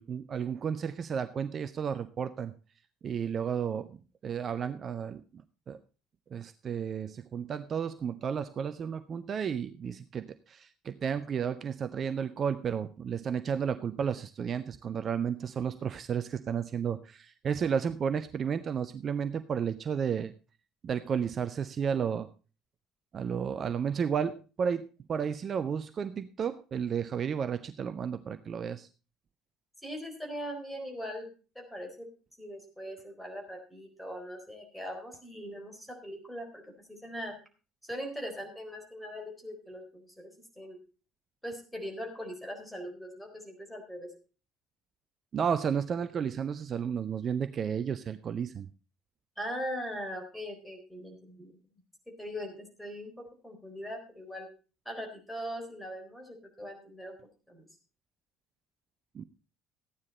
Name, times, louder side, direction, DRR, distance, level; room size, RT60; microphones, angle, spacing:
voice 1, 0.0-2.5 3.0-3.9 4.2-5.2 5.7-5.8 6.3-20.3 20.8-22.3 23.1-28.9 45.3-48.7 59.1-59.2, right 7 dB, 40° right, 12 dB, 0.6 m, -32 dB
voice 2, 29.8-31.3 31.5-32.1 32.4-37.4 37.8-40.8 41.4-44.1 49.4-51.8 52.1-54.5 54.9-57.2 57.5-57.7, equal, 5° left, 4 dB, 4.1 m, -41 dB
14.0 x 9.7 x 4.2 m, 0.35 s
figure-of-eight pair, 55°, 0 cm